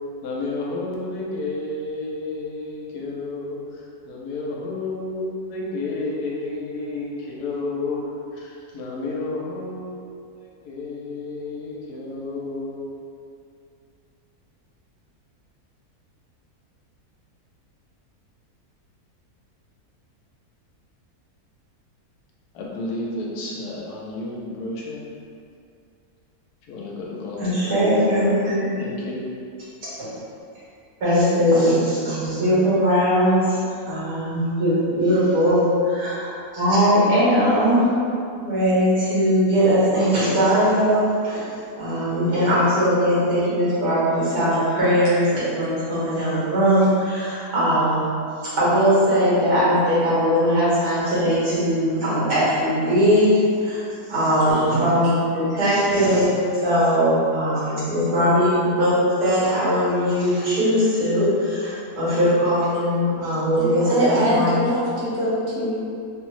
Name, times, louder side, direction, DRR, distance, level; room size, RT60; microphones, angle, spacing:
voice 1, 0.2-8.1 8.3-10.0 10.6-12.9 22.5-25.0 26.6-27.8 28.8-29.2, left 2 dB, 90° left, -3 dB, 1.2 m, -31 dB
voice 2, 27.4-28.8 30.0-30.1 31.0-33.6 33.9-37.9 38.4-48.1 48.6-53.3 53.6-64.6, equal, 85° right, -10 dB, 1.8 m, -20 dB
voice 3, 63.6-65.8, equal, 60° right, -7 dB, 1.1 m, -24 dB
3.6 x 2.0 x 3.1 m, 2.5 s
omnidirectional pair, 1.6 m